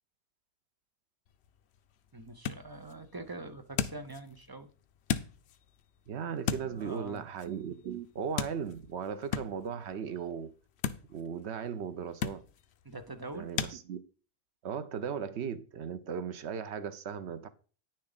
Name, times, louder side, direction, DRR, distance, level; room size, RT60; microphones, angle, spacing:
sound 1, 1.3-13.8, left 8 dB, 75° left, 0.9 m, -40 dB
voice 1, 2.1-4.7 6.6-7.2 12.8-13.6, right 2 dB, 25° right, 0.7 m, -44 dB
voice 2, 6.1-10.5 11.1-12.4 13.3-14.0 14.6-17.5, right 7 dB, 80° right, 1.0 m, -37 dB
9.6 x 6.5 x 4.0 m
omnidirectional pair, 1.1 m